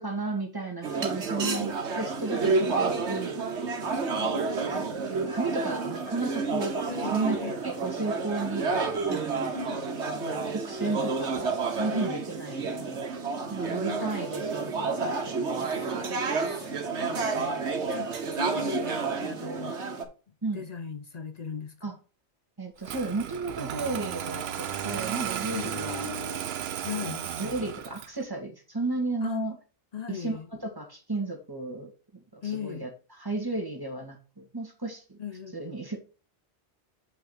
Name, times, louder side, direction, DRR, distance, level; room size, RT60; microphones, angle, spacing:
voice 1, 0.0-3.4 4.6-4.7 5.1-8.7 9.1-9.6 10.2-11.3 11.7-13.0 13.5-16.0 20.4-20.6 21.8-21.9 22.6-26.1 26.9-29.6 30.1-32.9 33.2-35.2 35.5-36.0, right 3 dB, 20° right, 2.0 m, -34 dB
sound 1, 0.8-20.0, right 4 dB, 85° right, 1.5 m, -30 dB
voice 2, 1.4-1.7 2.3-2.6 4.2-5.1 6.9-7.6 9.3-10.5 11.9-12.2 13.7-14.1 15.6-15.9 16.4-17.6 17.9-19.8 20.5-21.8 25.5-26.5 26.8-27.2 29.2-29.5 29.9-30.5 32.4-32.9 35.2-35.6, left 7 dB, 45° left, 0.6 m, -39 dB
Engine starting, 22.8-28.2, right 9 dB, 70° right, 0.9 m, -34 dB
7.5 x 5.6 x 3.9 m
omnidirectional pair, 1.1 m